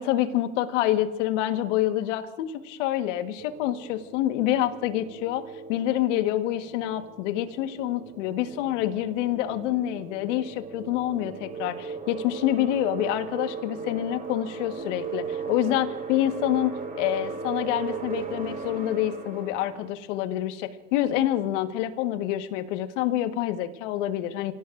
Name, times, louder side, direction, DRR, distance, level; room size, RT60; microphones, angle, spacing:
voice 1, 0.0-24.5, left 13 dB, 70° left, 8 dB, 1.5 m, -27 dB
sound 1, 3.4-19.9, right 5 dB, 20° right, 2.2 m, -37 dB
29.5 x 17.5 x 2.6 m, 1.2 s
supercardioid pair, 105°, 37 cm